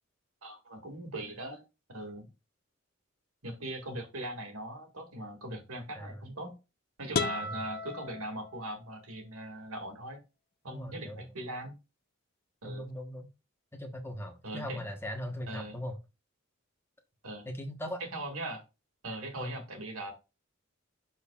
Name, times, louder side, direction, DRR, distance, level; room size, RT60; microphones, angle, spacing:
voice 1, 0.4-1.6 1.9-2.3 3.4-6.5 7.0-10.2 10.6-11.7 12.6-12.9 14.4-14.8 15.5-15.8 17.2-17.5 18.0-18.6 19.0-20.1, right 1 dB, 80° right, 2.2 m, -40 dB
sound 1, 7.1-9.0, left 4 dB, 45° left, 0.6 m, -35 dB
voice 2, 10.7-11.3 12.6-13.3 13.7-15.9 17.5-18.0 19.4-19.5, left 1 dB, 10° left, 1.2 m, -39 dB
13.0 x 4.4 x 2.4 m
head